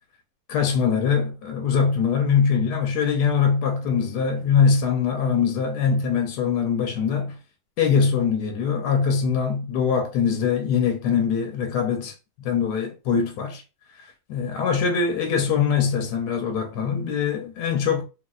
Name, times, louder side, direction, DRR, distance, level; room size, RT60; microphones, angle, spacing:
voice 1, 0.5-7.4 7.8-12.1 12.4-13.6 14.3-18.0, left 6 dB, 90° left, 1.1 m, -22 dB
3.1 x 2.7 x 2.3 m
omnidirectional pair, 1.7 m